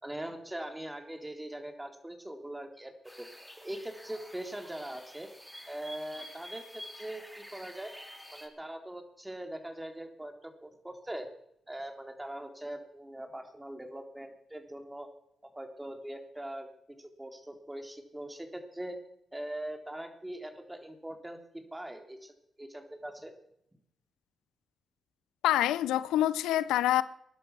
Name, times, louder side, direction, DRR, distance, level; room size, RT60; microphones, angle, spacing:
voice 1, 0.0-3.3 3.6-5.3 5.7-7.9 8.3-11.3 11.7-15.1 15.4-16.7 17.0-19.0 19.3-23.3, right 1 dB, 15° right, 3.8 m, -42 dB
sound 1, 3.0-8.5, equal, ahead, 4.8 m, -48 dB
voice 2, 25.4-27.0, left 13 dB, 85° left, 0.5 m, -26 dB
21.0 x 11.0 x 6.2 m
supercardioid pair, 40°, 0 cm